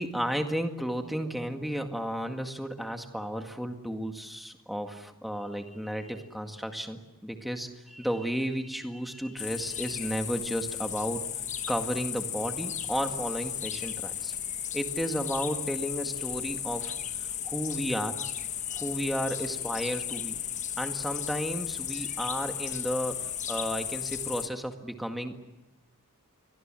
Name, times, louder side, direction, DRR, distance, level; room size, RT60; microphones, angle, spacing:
voice 1, 0.0-11.3 11.7-14.3 14.7-16.9 17.4-18.2 18.8-20.4 20.8-23.2 23.5-25.4, equal, ahead, 4 dB, 1.9 m, -33 dB
sound 1, 9.4-24.5, left 9 dB, 35° left, 1.2 m, -35 dB
29.0 x 23.5 x 7.6 m, 0.97 s
head